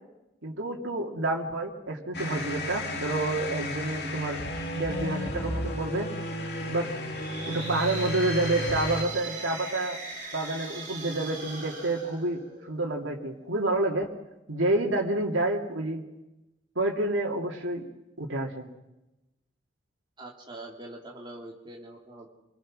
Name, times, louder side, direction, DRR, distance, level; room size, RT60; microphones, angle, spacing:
voice 1, 0.4-4.4 4.7-6.1 6.7-6.9 7.5-10.0 10.3-14.1 14.5-16.0 16.8-17.8 18.2-18.7, right 2 dB, 90° right, 0 dB, 2.5 m, -29 dB
sound 1, 2.1-9.0, left 1 dB, 55° left, 2.6 m, -33 dB
sound 2, 6.9-12.9, right 3 dB, 40° right, 7.3 m, -40 dB
voice 2, 20.2-22.3, right 1 dB, 25° right, -1 dB, 3.3 m, -43 dB
28.5 x 21.0 x 6.3 m, 0.98 s
head